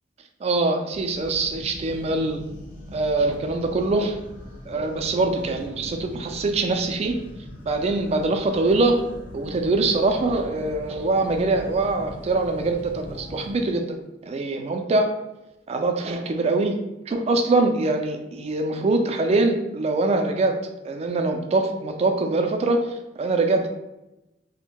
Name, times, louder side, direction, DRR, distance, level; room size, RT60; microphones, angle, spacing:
voice 1, 0.4-2.4 2.9-4.2 4.7-7.2 7.7-9.0 9.3-13.9 14.3-15.1 15.7-16.7 17.1-20.6 20.8-23.7, right 2 dB, 35° right, 5 dB, 0.3 m, -23 dB
sound 1, 0.9-13.6, left 1 dB, 45° left, 0.5 m, -41 dB
2.6 x 2.1 x 2.8 m, 0.95 s
head